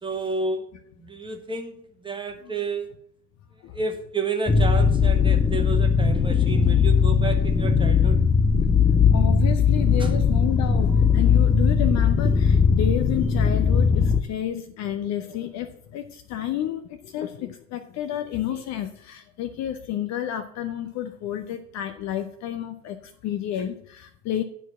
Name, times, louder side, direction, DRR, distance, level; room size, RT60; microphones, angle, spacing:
voice 1, 0.0-0.6 1.0-1.7 2.0-2.9 3.7-8.2 10.0-10.1, right 3 dB, 10° right, 4 dB, 1.3 m, -30 dB
sound 1, 4.5-14.2, left 6 dB, 10° left, 0.3 m, -19 dB
voice 2, 9.1-24.4, left 11 dB, 35° left, 8 dB, 0.7 m, -30 dB
9.8 x 4.6 x 7.2 m, 0.68 s
figure-of-eight pair, 75°, 48 cm